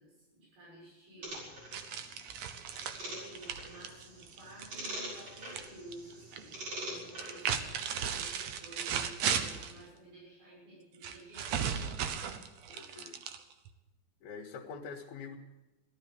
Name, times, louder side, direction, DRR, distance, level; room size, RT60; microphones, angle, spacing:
voice 1, 0.0-1.8 3.0-11.7, right 2 dB, 90° right, -4 dB, 8.5 m, -52 dB
sound 1, 1.2-7.7, right 1 dB, 50° right, 6.1 m, -45 dB
sound 2, 1.7-5.7 5.9-6.5 7.1-9.8 11.0-13.7, right 8 dB, 70° right, 1.7 m, -36 dB
voice 2, 12.7-13.2 14.2-15.4, left 5 dB, 85° left, 0 dB, 3.2 m, -45 dB
17.0 x 12.0 x 6.9 m, 1.1 s
omnidirectional pair, 4.2 m